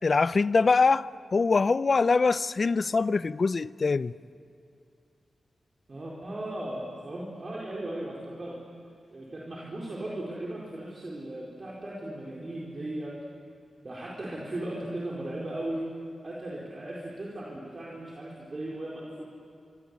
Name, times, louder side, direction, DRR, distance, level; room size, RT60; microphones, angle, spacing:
voice 1, 0.0-4.1, left 4 dB, 45° left, 0.6 m, -23 dB
voice 2, 5.9-8.5 9.1-13.1 13.8-15.8 16.2-19.2, right 1 dB, 40° right, 4.6 m, -37 dB
28.0 x 24.5 x 8.5 m
wide cardioid pair, 110°, 0 cm